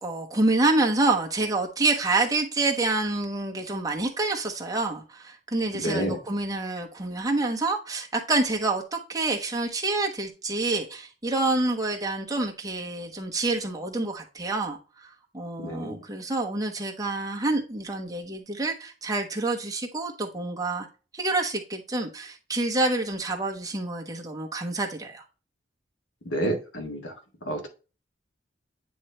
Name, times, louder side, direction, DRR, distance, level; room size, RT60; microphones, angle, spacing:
voice 1, 0.0-14.8 15.3-20.9 21.1-25.2, right 2 dB, 20° right, 1.1 m, -27 dB
voice 2, 5.8-6.2 15.6-15.9 26.3-27.0 27.5-27.7, right 1 dB, 80° left, 1.5 m, -28 dB
9.2 x 3.1 x 3.3 m
head